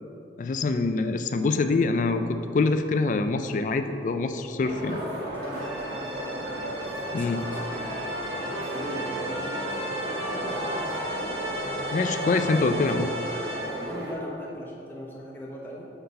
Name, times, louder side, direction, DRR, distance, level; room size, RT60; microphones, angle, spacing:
voice 1, 0.4-5.0 7.1-7.4 11.9-13.1, left 3 dB, 45° left, 8 dB, 0.3 m, -25 dB
sound 1, 4.6-14.1, right 1 dB, 60° right, 1.5 m, -34 dB
voice 2, 4.9-6.0 7.1-8.2 8.5-9.9 13.5-15.9, equal, 10° left, -4 dB, 1.0 m, -39 dB
sound 2, 5.6-14.0, equal, 80° right, 1.0 m, -37 dB
Trumpet, 7.2-14.3, equal, 5° right, 1.4 m, -40 dB
6.6 x 3.9 x 5.6 m, 2.8 s
head